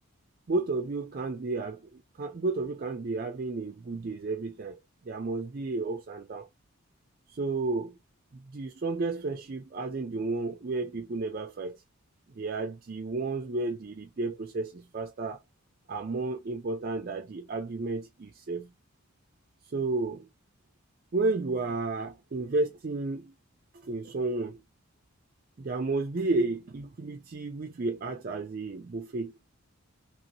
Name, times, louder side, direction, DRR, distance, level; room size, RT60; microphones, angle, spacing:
voice 1, 0.5-4.8 5.1-6.5 7.3-8.0 8.5-11.8 12.4-15.4 15.9-18.7 19.7-20.3 21.1-23.3 23.8-24.6 25.6-29.3, right 3 dB, 40° right, 0.4 m, -32 dB
3.0 x 2.8 x 2.7 m
head